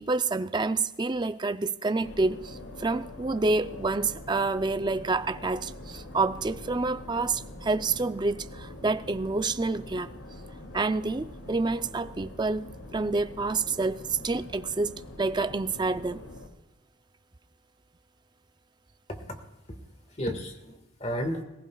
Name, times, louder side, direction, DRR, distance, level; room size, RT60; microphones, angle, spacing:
voice 1, 0.0-10.1 10.7-12.7 12.9-16.2, right 3 dB, 20° right, 0.4 m, -28 dB
sound 1, 2.0-16.5, left 1 dB, 85° left, 2.3 m, -44 dB
voice 2, 20.1-21.4, equal, 30° left, 1.7 m, -33 dB
26.0 x 15.0 x 2.3 m
head